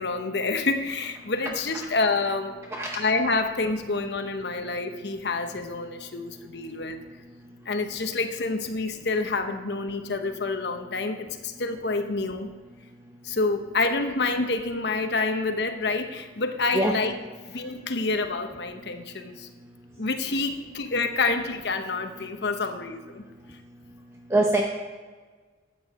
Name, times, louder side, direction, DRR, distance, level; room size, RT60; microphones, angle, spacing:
voice 1, 0.0-2.6 2.9-7.0 7.6-12.5 13.2-17.2 17.5-19.5 20.0-23.2, left 3 dB, 65° left, 7 dB, 0.9 m, -28 dB
voice 2, 24.3-24.6, right 1 dB, 15° right, 0 dB, 0.7 m, -22 dB
13.0 x 8.7 x 4.2 m, 1.4 s
head